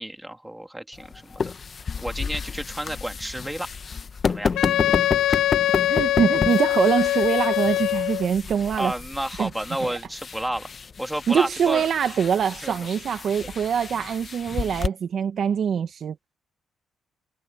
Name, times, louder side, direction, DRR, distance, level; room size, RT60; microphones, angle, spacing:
voice 1, 0.0-1.5 2.0-3.7 4.3-4.5 5.3-5.4 7.1-7.2 8.8-10.7 11.0-11.9 12.6-12.7, right 1 dB, 5° right, 2.8 m, -31 dB
sound 1, 0.9-14.9, left 5 dB, 40° left, 1.1 m, -31 dB
Wind instrument woodwind instrument, 4.6-8.3, left 14 dB, 80° left, 0.7 m, -23 dB
voice 2, 5.9-8.9 9.4-9.5 9.8-10.0 11.3-16.1, right 7 dB, 60° right, 1.4 m, -24 dB
cardioid pair, 90°, 0 cm